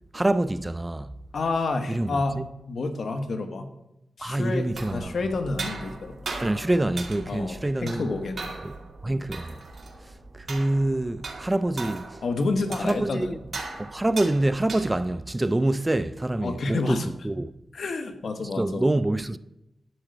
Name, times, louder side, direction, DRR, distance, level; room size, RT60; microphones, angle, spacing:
voice 1, 0.1-1.1 1.9-2.5 4.2-5.1 6.4-8.1 8.6-8.7 9.0-9.6 10.3-12.2 12.8-13.4 13.8-17.5 18.6-19.4, right 1 dB, 20° right, 0.4 m, -26 dB
voice 2, 1.3-2.4 2.7-3.7 4.2-6.2 7.3-8.6 12.2-13.3 16.4-17.1 17.7-18.8, left 3 dB, 70° left, 1.3 m, -29 dB
sound 1, 4.5-15.2, right 3 dB, 60° right, 2.1 m, -39 dB
11.0 x 4.7 x 7.9 m
cardioid pair, 80°, 0 cm